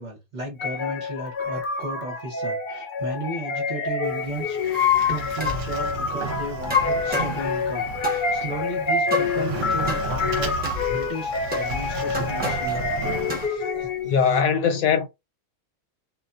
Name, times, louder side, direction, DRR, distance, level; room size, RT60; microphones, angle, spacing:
voice 1, 0.0-4.6 5.1-13.0 13.4-14.4, right 1 dB, 40° right, 0.8 m, -35 dB
sound 1, 0.6-14.2, left 4 dB, 70° left, 0.4 m, -28 dB
Sliding door, 4.0-13.5, right 4 dB, 70° right, 0.9 m, -34 dB
sound 2, 4.7-5.7 6.7-7.4 8.0-8.2 9.1-9.3 9.9-10.0 10.6-10.8 11.5-11.6 12.1-12.8 13.3-13.4, left 6 dB, 10° right, 0.4 m, -25 dB
voice 2, 14.0-15.1, left 6 dB, 85° left, 1.0 m, -20 dB
2.4 x 2.1 x 2.4 m
omnidirectional pair, 1.4 m